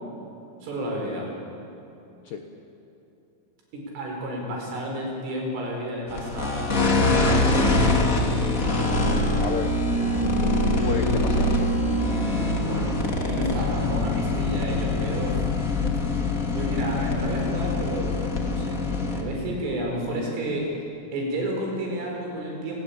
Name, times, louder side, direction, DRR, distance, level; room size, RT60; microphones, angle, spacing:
voice 1, 0.6-1.3 3.7-7.6 12.6-15.5 16.5-18.8 19.1-20.7 21.1-22.8, right 1 dB, 90° right, 0 dB, 7.6 m, -31 dB
sound 1, 6.1-19.2, left 2 dB, 30° left, 1.4 m, -24 dB
voice 2, 8.3-9.8 10.2-10.3 10.8-11.7, left 7 dB, 70° left, 4 dB, 2.1 m, -33 dB
30.0 x 18.5 x 8.8 m, 2.9 s
omnidirectional pair, 5.6 m